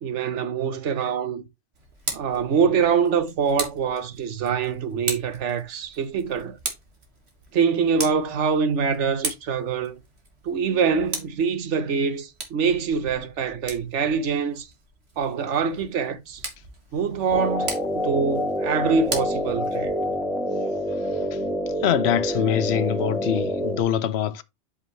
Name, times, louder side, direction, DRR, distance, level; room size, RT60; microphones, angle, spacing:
voice 1, 0.0-1.4 2.1-6.6 7.5-10.0 10.4-14.7 15.2-16.4 16.9-19.9, right 6 dB, 80° right, 1.2 m, -24 dB
Tick, 1.7-20.2, right 3 dB, 60° right, 2.1 m, -38 dB
sound 1, 17.3-23.8, equal, ahead, 1.5 m, -27 dB
voice 2, 21.8-24.4, left 10 dB, 65° left, 0.9 m, -24 dB
8.0 x 5.5 x 3.1 m
omnidirectional pair, 1.2 m